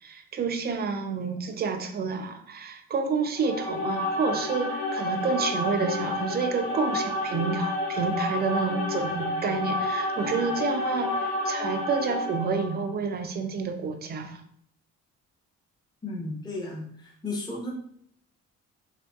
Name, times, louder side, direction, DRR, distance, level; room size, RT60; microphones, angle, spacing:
voice 1, 0.0-14.4, right 5 dB, 35° right, 6 dB, 0.4 m, -29 dB
sound 1, 3.3-12.8, left 2 dB, 65° left, 1.2 m, -30 dB
voice 2, 16.0-17.7, left 2 dB, 15° left, -2 dB, 0.7 m, -34 dB
2.7 x 2.6 x 2.3 m, 0.66 s
cardioid pair, 90°, 30 cm